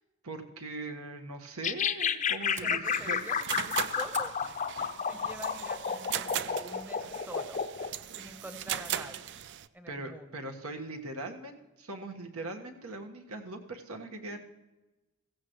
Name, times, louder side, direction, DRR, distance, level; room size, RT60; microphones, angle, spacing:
voice 1, 0.2-3.2 9.9-14.4, right 2 dB, 75° right, 4 dB, 1.5 m, -41 dB
sound 1, 1.6-7.9, left 7 dB, 35° left, 0.5 m, -31 dB
Fire, 2.0-5.5 5.9-6.3 6.7-6.8 7.3-7.7, right 5 dB, 35° right, 1.0 m, -50 dB
voice 2, 2.6-4.3 5.1-7.6 8.2-9.3 9.7-10.4, right 1 dB, 10° right, 8 dB, 0.9 m, -46 dB
sound 2, 2.8-9.7, right 10 dB, 55° right, 0.4 m, -38 dB
16.0 x 15.5 x 3.1 m, 1.1 s
head